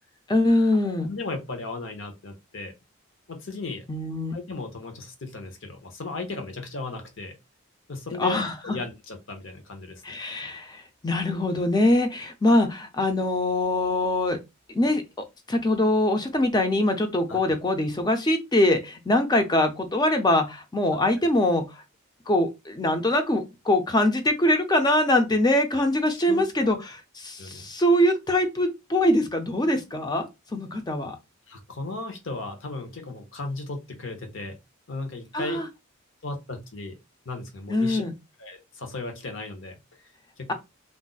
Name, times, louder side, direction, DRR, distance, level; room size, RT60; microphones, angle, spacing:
voice 1, 0.3-1.1 3.9-4.4 8.2-8.8 10.0-14.4 14.7-15.0 15.5-21.8 22.3-27.0 27.2-31.2 35.3-35.7 37.7-38.1, left 1 dB, 20° left, 0.5 m, -23 dB
voice 2, 1.0-2.7 3.3-3.8 4.3-7.4 7.9-10.1 17.3-17.5 26.3-26.8 27.4-27.7 31.5-34.6 34.9-35.6 36.2-36.9 37.2-38.0 38.4-39.8 40.4-40.5, left 3 dB, 65° left, 0.8 m, -36 dB
2.5 x 2.0 x 3.8 m
head